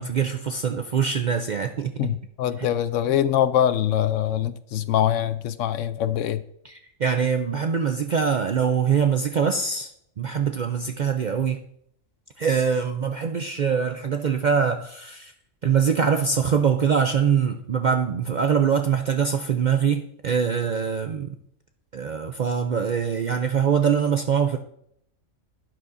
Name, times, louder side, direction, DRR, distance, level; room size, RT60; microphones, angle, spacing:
voice 1, 0.0-1.9 2.6-2.7 6.6-9.9 10.2-11.6 12.4-15.3 15.6-21.3 21.9-24.6, right 7 dB, 55° right, 6 dB, 0.5 m, -23 dB
voice 2, 2.0-6.4, left 10 dB, 75° left, 13 dB, 0.9 m, -23 dB
11.5 x 11.0 x 2.6 m, 0.71 s
omnidirectional pair, 1.3 m